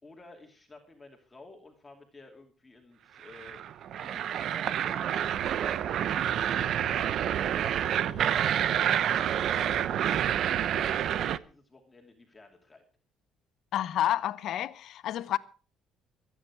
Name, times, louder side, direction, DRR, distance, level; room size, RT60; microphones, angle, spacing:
voice 1, 0.0-12.8, left 3 dB, 15° left, 2.6 m, -52 dB
sound 1, 3.2-11.4, right 10 dB, 60° right, 0.8 m, -28 dB
voice 2, 13.7-15.4, left 12 dB, 65° left, 0.8 m, -29 dB
24.0 x 9.4 x 4.8 m
cardioid pair, 120°, 0 cm